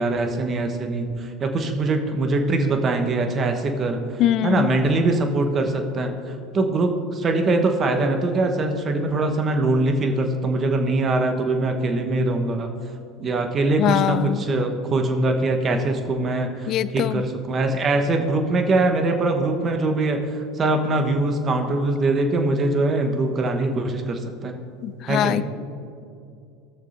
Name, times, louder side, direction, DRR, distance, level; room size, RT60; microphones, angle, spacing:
voice 1, 0.0-4.0 4.4-12.7 13.2-24.5 25.1-25.4, right 2 dB, 35° right, 4 dB, 1.1 m, -22 dB
voice 2, 4.2-4.7 13.8-14.4 16.7-17.2 24.8-25.4, left 12 dB, 50° left, 16 dB, 0.4 m, -22 dB
17.5 x 6.6 x 2.7 m, 2.5 s
hypercardioid pair, 75°, 0 cm